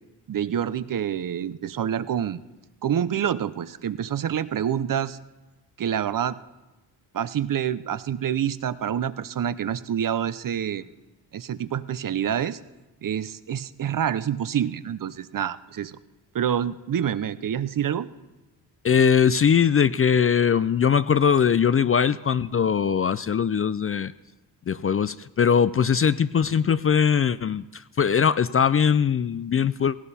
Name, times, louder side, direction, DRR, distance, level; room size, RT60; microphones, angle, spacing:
voice 1, 0.3-2.4 2.8-5.2 5.8-6.4 7.1-10.9 11.3-12.6 13.0-16.0 16.3-18.1, right 9 dB, 50° right, 15 dB, 0.7 m, -27 dB
voice 2, 18.8-24.1 24.7-30.0, left 7 dB, 35° left, 16 dB, 0.4 m, -21 dB
17.5 x 17.0 x 4.2 m, 1.1 s
cardioid pair, 75°, 43 cm